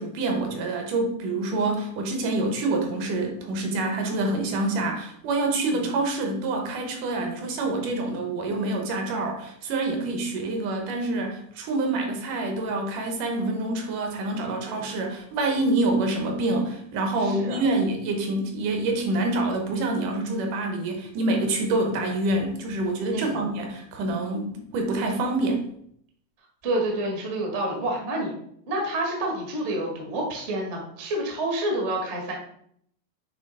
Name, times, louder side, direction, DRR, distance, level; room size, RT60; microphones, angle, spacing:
voice 1, 0.0-25.7, right 2 dB, 75° right, 3 dB, 2.4 m, -26 dB
voice 2, 17.2-17.6 23.1-23.5 26.6-28.3 28.7-32.3, right 1 dB, 50° right, -1 dB, 0.8 m, -28 dB
8.2 x 3.0 x 4.1 m, 0.68 s
omnidirectional pair, 3.8 m